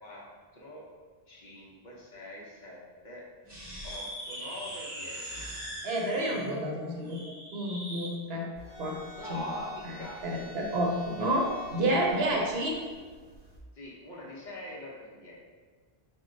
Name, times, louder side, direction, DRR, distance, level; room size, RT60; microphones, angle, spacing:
voice 1, 0.0-0.9 1.3-3.3 3.8-5.5 8.9-10.3 13.7-15.4, left 1 dB, 50° left, -4 dB, 0.8 m, -43 dB
sound 1, 3.4-8.2, equal, 25° right, 0.8 m, -40 dB
voice 2, 5.8-7.2 7.5-8.5 8.8-9.0 9.3-9.4 10.2-12.8, right 1 dB, 75° right, -1 dB, 1.0 m, -29 dB
sound 2, 8.6-13.6, left 1 dB, 10° left, 0.9 m, -48 dB
4.6 x 2.2 x 3.8 m, 1.4 s
omnidirectional pair, 1.1 m